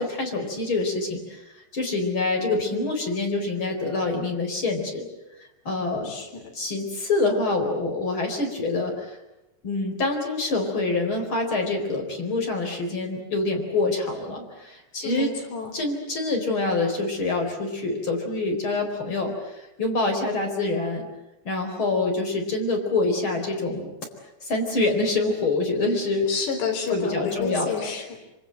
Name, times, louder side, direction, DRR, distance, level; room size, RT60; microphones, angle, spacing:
voice 1, 0.0-1.4 1.7-5.1 5.6-6.1 6.5-9.2 9.6-15.3 15.7-21.0 21.4-23.9 24.4-26.3 26.9-27.9, left 3 dB, 30° left, 2 dB, 4.7 m, -26 dB
voice 2, 6.0-6.5 15.0-15.7 26.3-28.2, left 5 dB, 80° left, 3 dB, 6.0 m, -30 dB
26.0 x 25.0 x 7.9 m, 0.93 s
omnidirectional pair, 4.9 m